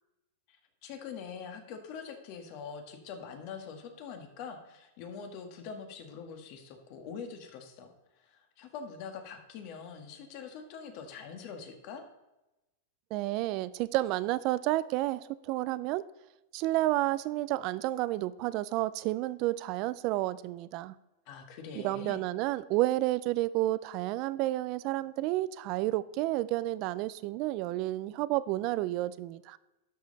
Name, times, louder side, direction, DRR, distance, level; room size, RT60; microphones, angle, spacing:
voice 1, 0.8-12.0 21.3-22.2, left 6 dB, 50° left, 5 dB, 1.6 m, -44 dB
voice 2, 13.1-16.0 16.5-20.9 21.7-29.6, right 16 dB, 45° right, 17 dB, 0.4 m, -30 dB
12.0 x 5.5 x 4.0 m, 0.99 s
supercardioid pair, 145°, 0 cm